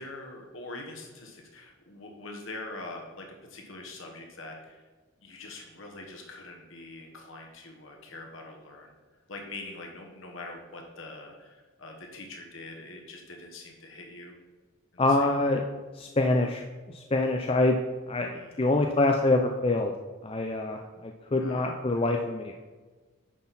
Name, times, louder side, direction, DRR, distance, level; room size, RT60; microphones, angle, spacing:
voice 1, 0.0-4.8 5.2-8.9 9.3-14.3 14.9-15.5 18.3-18.7 21.4-22.0, left 2 dB, 85° left, 1 dB, 1.3 m, -44 dB
voice 2, 15.0-15.6 15.9-17.8 18.1-19.9 20.2-22.6, left 2 dB, 30° left, 3 dB, 0.5 m, -26 dB
9.9 x 5.9 x 4.2 m, 1.3 s
head